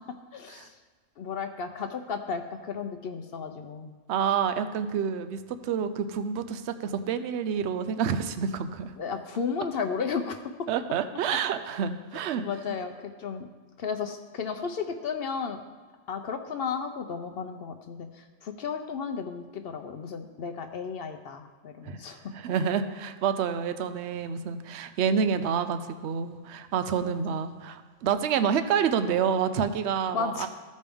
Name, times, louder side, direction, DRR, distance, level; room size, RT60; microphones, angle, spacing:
voice 1, 0.3-0.7 1.2-3.9 9.0-10.7 12.1-13.5 13.8-15.6 16.1-22.2 27.0-27.4 30.1-30.5, left 6 dB, 60° left, 6 dB, 0.7 m, -34 dB
voice 2, 4.1-8.9 10.7-12.4 21.8-22.0 22.3-30.5, right 7 dB, 70° right, 10 dB, 0.8 m, -28 dB
15.0 x 5.3 x 3.5 m, 1.4 s
omnidirectional pair, 1.3 m